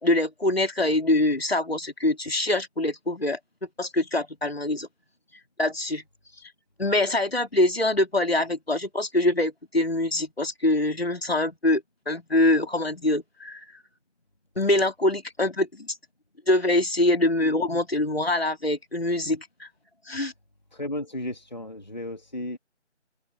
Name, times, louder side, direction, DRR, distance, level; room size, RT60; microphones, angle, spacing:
voice 1, 0.0-3.4 3.8-4.9 5.6-6.0 6.8-13.6 14.6-16.0 16.5-19.7 20.1-20.3, left 1 dB, 55° left, 3.2 m, -24 dB
voice 2, 20.7-22.6, left 1 dB, 35° left, 1.9 m, -34 dB
open air
figure-of-eight pair, 175°, 36 cm